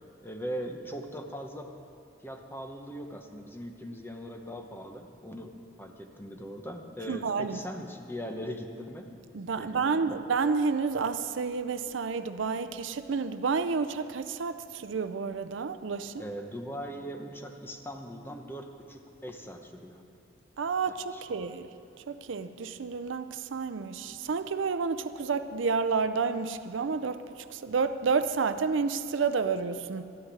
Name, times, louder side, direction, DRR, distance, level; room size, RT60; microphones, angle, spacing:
voice 1, 0.2-1.7 2.2-5.5 5.8-9.1 9.5-10.2 16.2-20.0 20.9-21.5, equal, 10° left, 0.9 m, -40 dB
voice 2, 7.1-7.6 9.3-16.2 20.6-21.7 22.1-30.0, right 5 dB, 70° right, 0.5 m, -30 dB
13.5 x 6.4 x 9.9 m
head